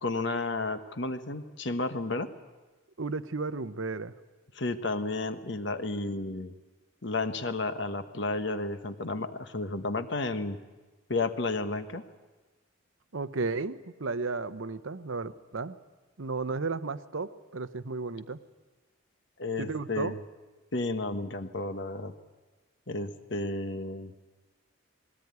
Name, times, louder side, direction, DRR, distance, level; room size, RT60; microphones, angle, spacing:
voice 1, 0.0-2.3 4.5-6.5 7.0-10.6 11.1-12.1 19.4-20.2 20.7-22.1 22.9-24.1, left 2 dB, 60° left, 9 dB, 1.3 m, -32 dB
voice 2, 3.0-4.1 13.1-15.8 16.2-18.4 19.6-20.1, right 3 dB, 80° right, 12 dB, 0.9 m, -34 dB
20.5 x 18.0 x 9.6 m, 1.2 s
head